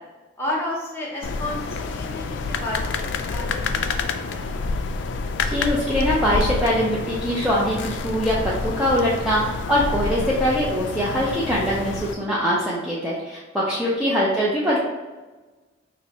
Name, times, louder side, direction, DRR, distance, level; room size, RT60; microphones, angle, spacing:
voice 1, 0.4-2.9 3.1-3.8 4.2-4.5 8.7-8.8 13.8-14.2, left 1 dB, 10° left, -5 dB, 0.9 m, -32 dB
sound 1, 1.2-12.1, left 4 dB, 70° left, 0.3 m, -28 dB
voice 2, 5.5-14.8, equal, 5° right, -7 dB, 0.4 m, -22 dB
3.0 x 2.7 x 4.1 m, 1.2 s
head